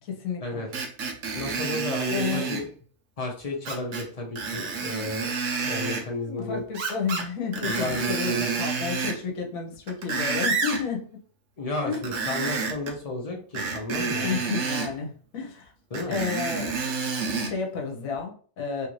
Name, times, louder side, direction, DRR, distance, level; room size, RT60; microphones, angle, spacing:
voice 1, 0.0-0.7 2.1-2.5 6.2-11.1 11.8-12.0 14.2-15.7 16.1-16.7 17.4-18.9, left 5 dB, 65° left, 2 dB, 1.2 m, -31 dB
Screech, 0.7-2.6 3.6-4.1 4.4-6.0 6.7-7.3 7.5-9.2 9.7-10.8 11.9-12.9 13.5-14.9 15.9-17.5 18.1-18.2, right 4 dB, 60° right, 1.0 m, -29 dB
voice 2, 1.3-2.6 3.2-5.3 5.6-6.6 7.6-8.5 11.6-14.3 15.9-16.2, left 2 dB, 40° left, 0 dB, 0.5 m, -32 dB
3.1 x 2.5 x 3.0 m, 0.43 s
omnidirectional pair, 1.6 m